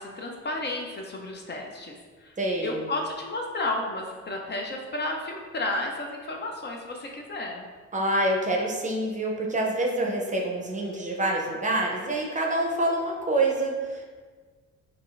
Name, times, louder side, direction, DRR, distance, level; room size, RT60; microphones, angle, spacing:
voice 1, 0.0-2.0 2.2-7.6, left 2 dB, 35° left, 1 dB, 0.4 m, -32 dB
voice 2, 2.4-2.8 7.9-14.0, right 1 dB, 25° right, 0 dB, 0.6 m, -26 dB
4.7 x 2.4 x 2.4 m, 1.5 s
cardioid pair, 90°, 30 cm